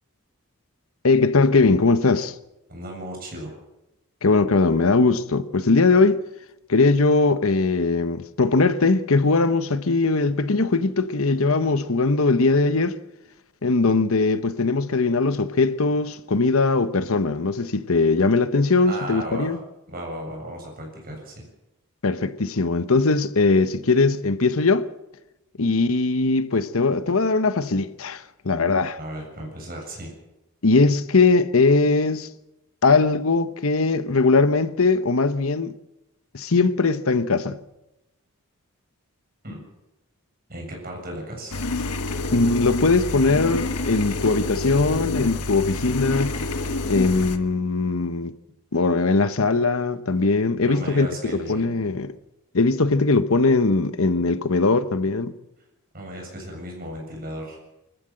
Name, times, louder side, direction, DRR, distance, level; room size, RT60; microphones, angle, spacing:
voice 1, 1.0-2.4 4.2-6.2 6.7-13.0 13.6-19.6 22.0-24.9 25.6-29.0 30.6-32.3 32.8-35.7 36.3-37.6 42.3-46.3 46.9-48.3 48.7-51.1 51.5-52.1 52.5-55.3, left 3 dB, 65° left, 1.0 m, -20 dB
voice 2, 2.7-3.5 18.8-19.6 19.9-21.4 28.9-30.1 39.4-39.6 40.5-41.6 50.6-51.7 55.9-57.6, right 1 dB, 40° right, 7.6 m, -35 dB
sound 1, 41.5-47.4, left 2 dB, 85° left, 1.5 m, -28 dB
24.5 x 14.5 x 7.7 m
head